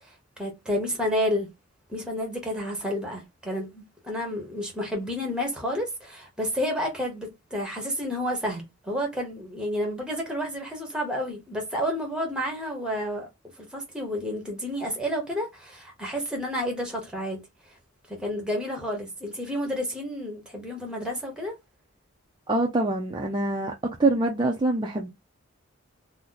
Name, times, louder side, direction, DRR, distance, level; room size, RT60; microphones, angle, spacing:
voice 1, 0.4-1.5 1.9-13.3 13.6-17.4 18.1-21.5, equal, 5° right, 1.0 m, -30 dB
voice 2, 22.5-23.7 24.0-25.1, right 2 dB, 20° right, 0.4 m, -24 dB
2.9 x 2.1 x 3.7 m
head